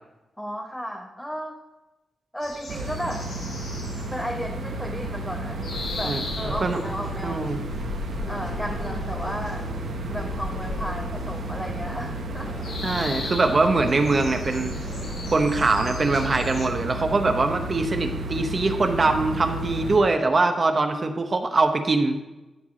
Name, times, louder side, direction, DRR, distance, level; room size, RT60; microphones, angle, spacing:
voice 1, 0.4-1.6 2.3-3.3 4.1-5.6 6.0-7.5 8.3-9.6 10.1-12.5, equal, 5° left, 1 dB, 0.8 m, -34 dB
sound 1, 2.4-16.7, left 3 dB, 75° left, 1.6 m, -37 dB
sound 2, 2.7-20.0, right 2 dB, 85° right, 1.0 m, -32 dB
sound 3, 5.6-15.5, left 1 dB, 55° left, 3.6 m, -44 dB
voice 2, 6.0-6.8 7.2-7.6 12.8-14.7 15.3-22.1, right 3 dB, 40° right, 6 dB, 0.9 m, -23 dB
12.5 x 4.6 x 5.0 m, 1.1 s
cardioid pair, 95°, 0 cm